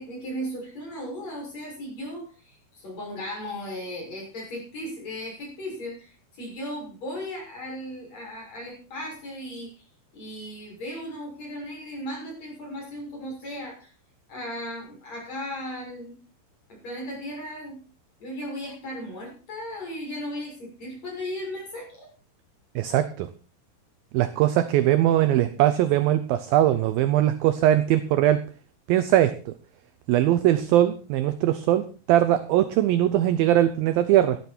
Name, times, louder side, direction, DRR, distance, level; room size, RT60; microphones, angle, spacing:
voice 1, 0.0-9.7 10.1-13.9 14.3-16.1 16.7-17.8 18.2-22.1 25.2-25.6, equal, 40° left, -2 dB, 7.7 m, -36 dB
voice 2, 22.8-23.3 24.1-28.4 28.9-29.5 30.1-34.4, right 12 dB, 75° right, 11 dB, 2.2 m, -21 dB
12.5 x 12.5 x 4.5 m, 0.36 s
omnidirectional pair, 4.8 m